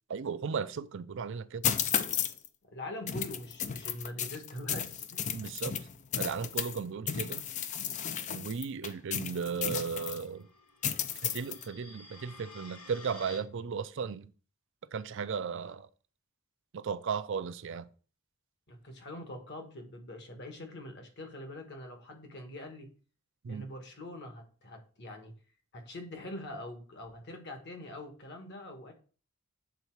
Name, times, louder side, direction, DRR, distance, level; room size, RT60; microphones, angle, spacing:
voice 1, 0.1-1.6 5.3-5.8 6.2-7.4 8.3-10.5 11.2-14.3 14.9-15.9 16.7-17.9 23.4-23.7, right 6 dB, 60° right, 0.4 m, -35 dB
sound 1, 1.6-2.5 3.1-6.8 7.1-10.2 10.8-11.7, left 8 dB, 35° left, 0.4 m, -34 dB
voice 2, 2.6-5.3 18.7-22.9 23.5-25.3 25.7-28.9, left 1 dB, 50° left, 1.4 m, -44 dB
sound 2, 9.9-13.4, left 2 dB, 85° left, 1.4 m, -52 dB
6.9 x 4.0 x 4.6 m
head